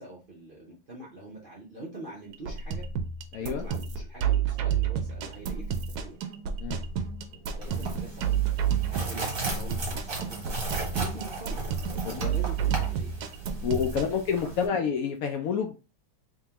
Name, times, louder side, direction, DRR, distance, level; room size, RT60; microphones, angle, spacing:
voice 1, 0.0-2.9 3.4-5.7 6.0-6.2 7.3-8.2 8.9-10.4 10.9-13.1 13.7-14.2 14.5-14.8, right 2 dB, 90° right, -3 dB, 0.4 m, -44 dB
sound 1, 2.3-14.1, right 8 dB, 70° right, 1.0 m, -30 dB
voice 2, 3.3-3.6 6.6-6.8 12.0-12.3 13.6-15.8, left 7 dB, 90° left, 4 dB, 0.7 m, -28 dB
sound 2, 7.6-14.7, right 3 dB, 35° right, 1.0 m, -36 dB
3.6 x 3.0 x 2.8 m, 0.32 s
omnidirectional pair, 2.1 m